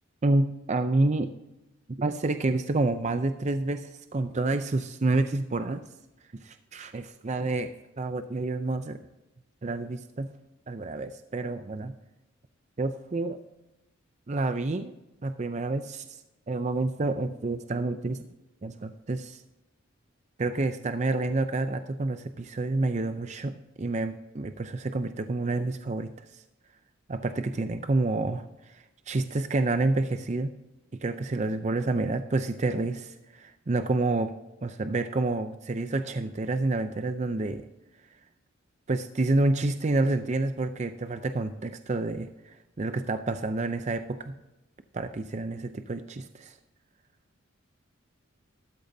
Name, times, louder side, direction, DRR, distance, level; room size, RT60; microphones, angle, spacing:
voice 1, 0.2-1.3 2.0-5.8 6.3-7.7 8.0-9.0 9.6-10.3 10.7-11.9 12.8-13.4 14.3-14.9 15.2-16.1 16.5-18.2 18.6-19.4 20.4-26.4 27.1-30.5 31.0-34.3 34.6-37.6 38.9-44.3 44.9-46.6, right 2 dB, 35° right, 9 dB, 0.5 m, -28 dB
13.0 x 13.0 x 2.7 m, 0.98 s
head